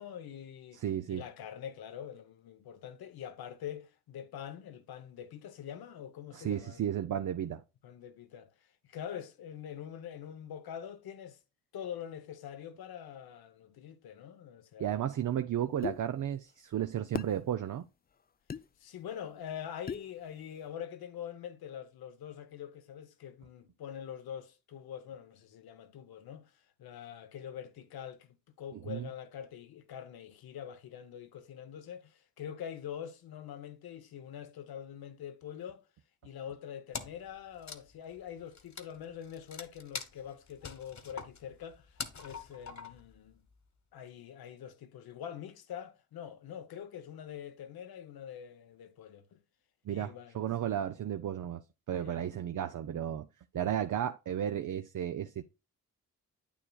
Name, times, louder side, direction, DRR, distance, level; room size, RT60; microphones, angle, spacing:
voice 1, 0.0-0.8 1.1-6.8 7.8-11.4 11.7-15.0 18.8-35.8 36.2-43.4 43.9-49.4 49.9-50.4 52.0-52.3, left 9 dB, 85° left, 0.9 m, -45 dB
voice 2, 0.7-1.2 6.3-7.6 14.8-17.9 28.7-29.1 49.9-51.6 51.9-53.3 53.5-55.4, right 10 dB, 60° right, 0.6 m, -33 dB
sound 1, 15.8-16.0 17.1-17.4 18.5-18.6 19.9-20.1, left 6 dB, 25° left, 0.4 m, -36 dB
Wood, 36.9-37.3 37.6-43.1, left 5 dB, 50° left, 1.2 m, -44 dB
8.6 x 7.2 x 2.3 m
supercardioid pair, 40°, 36 cm